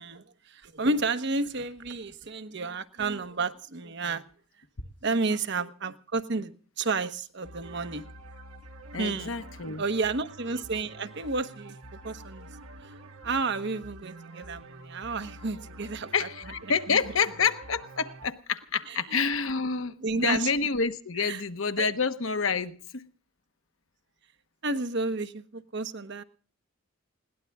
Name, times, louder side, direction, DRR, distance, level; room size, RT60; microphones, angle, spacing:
voice 1, 0.0-4.2 5.0-8.0 9.0-9.5 9.8-11.8 12.0-12.5 12.8-12.9 13.2-16.3 16.9-17.0 18.9-19.2 20.0-20.5 21.2-21.4 21.8-21.9 24.6-26.2, right 3 dB, 55° right, 1.1 m, -31 dB
sound 1, 7.4-18.3, right 1 dB, 85° right, 1.5 m, -47 dB
voice 2, 8.9-9.8 16.1-23.1, left 5 dB, 70° left, 1.2 m, -28 dB
20.5 x 17.5 x 3.6 m
head